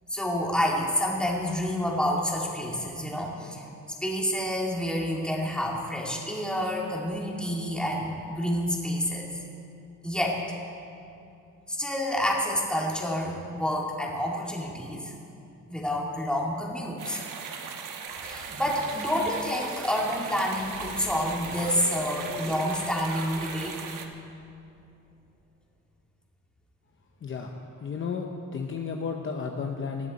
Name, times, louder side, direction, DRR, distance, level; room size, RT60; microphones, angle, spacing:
voice 1, 0.1-3.6 4.0-9.3 10.0-10.6 11.7-15.1 15.7-17.2 18.2-23.8, equal, 5° left, -2 dB, 2.2 m, -28 dB
sound 1, 17.0-24.1, right 6 dB, 75° right, 1.3 m, -39 dB
sound 2, 18.1-25.2, right 1 dB, 30° right, 3.8 m, -45 dB
voice 2, 27.2-30.1, left 5 dB, 40° left, 2 dB, 0.9 m, -33 dB
19.5 x 14.5 x 4.2 m, 2.6 s
cardioid pair, 150°, 32 cm